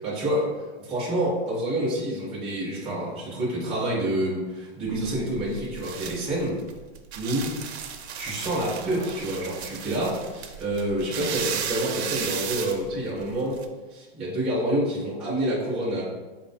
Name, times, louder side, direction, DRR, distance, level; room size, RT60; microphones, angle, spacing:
voice 1, 0.0-6.5 7.1-7.5 8.2-13.6 13.9-16.0, right 1 dB, ahead, -6 dB, 0.3 m, -28 dB
sound 1, 4.8-13.6, right 7 dB, 85° right, 0.6 m, -35 dB
4.2 x 2.6 x 3.5 m, 1.2 s
supercardioid pair, 160°, 32 cm